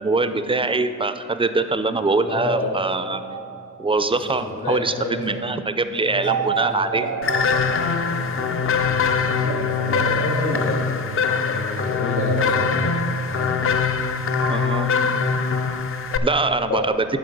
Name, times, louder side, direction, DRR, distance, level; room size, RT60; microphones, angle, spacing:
voice 1, 0.0-3.2 3.8-7.1 14.5-14.9 16.2-16.9, right 3 dB, 20° right, 11 dB, 0.4 m, -23 dB
voice 2, 2.3-2.8 4.2-5.4 6.0-7.0 7.6-13.0 13.3-13.5 16.6-16.9, left 2 dB, 70° left, 0 dB, 1.6 m, -30 dB
sound 1, 3.1-4.4 6.2-8.8 9.5-11.4 12.2-14.1 14.4-15.8, right 7 dB, 70° right, 0.6 m, -31 dB
sound 2, 7.2-16.2, left 5 dB, 45° left, 0.5 m, -23 dB
9.3 x 5.2 x 6.6 m, 2.6 s
cardioid pair, 100°, 31 cm